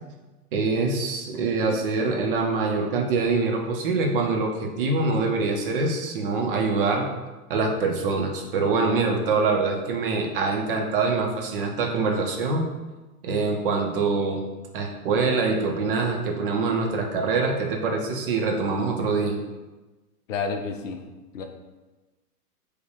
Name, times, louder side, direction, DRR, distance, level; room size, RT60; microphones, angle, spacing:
voice 1, 0.5-7.1 7.5-12.7 13.2-14.4 14.7-19.4, right 4 dB, 40° right, 2 dB, 0.6 m, -24 dB
voice 2, 20.3-21.0 21.3-21.4, left 5 dB, 55° left, 5 dB, 0.7 m, -29 dB
5.0 x 2.2 x 4.7 m, 1.2 s
hypercardioid pair, 145°, 45 cm